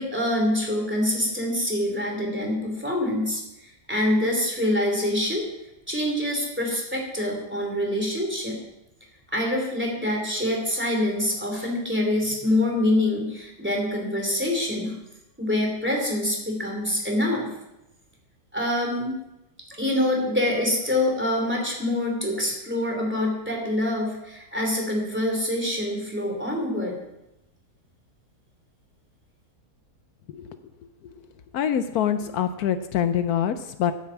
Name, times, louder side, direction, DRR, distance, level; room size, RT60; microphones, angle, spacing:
voice 1, 0.0-5.5 5.9-8.6 9.3-14.9 15.4-17.5 18.5-19.1 19.8-27.0, left 1 dB, 5° right, -1 dB, 3.0 m, -25 dB
voice 2, 31.5-33.9, left 9 dB, 75° left, 10 dB, 1.1 m, -25 dB
9.4 x 8.9 x 7.1 m, 0.91 s
omnidirectional pair, 1.6 m